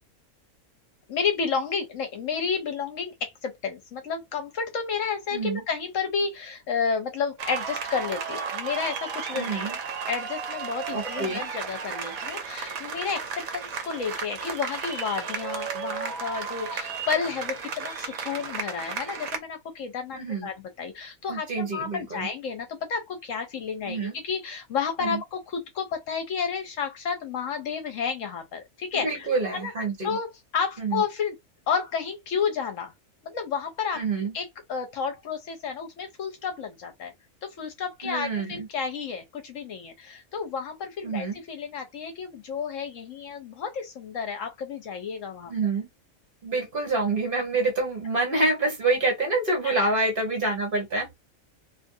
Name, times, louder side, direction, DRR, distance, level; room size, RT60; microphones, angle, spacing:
voice 1, 1.1-29.7 30.0-31.4 31.7-32.9 33.2-37.1 37.4-45.5 49.6-50.0, left 6 dB, 65° left, 1.0 m, -31 dB
voice 2, 5.3-5.6 9.3-9.8 10.9-11.4 20.2-20.5 21.3-22.3 23.8-24.1 25.0-25.2 28.9-30.2 30.8-31.0 34.0-34.3 38.0-38.7 41.0-41.4 45.5-45.9 46.4-51.2, right 3 dB, 40° right, 1.2 m, -27 dB
sound 1, 7.4-19.4, right 6 dB, 75° right, 1.1 m, -34 dB
2.7 x 2.5 x 2.6 m
omnidirectional pair, 1.5 m